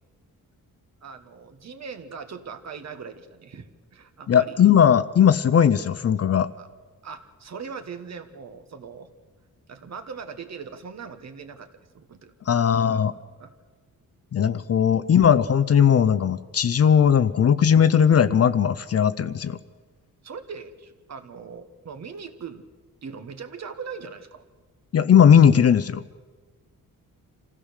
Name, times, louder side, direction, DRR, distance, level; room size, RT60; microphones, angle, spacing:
voice 1, 1.0-4.6 6.6-6.7 7.0-9.1 9.7-11.7 11.9-13.0 13.4-13.5 14.7-14.9 20.2-22.7 23.0-24.4, right 5 dB, 50° right, 8 dB, 1.3 m, -40 dB
voice 2, 4.3-6.5 12.5-13.1 14.3-19.6 24.9-26.0, left 8 dB, 45° left, 14 dB, 0.6 m, -18 dB
27.0 x 15.5 x 6.5 m, 1.4 s
wide cardioid pair, 150°, 35 cm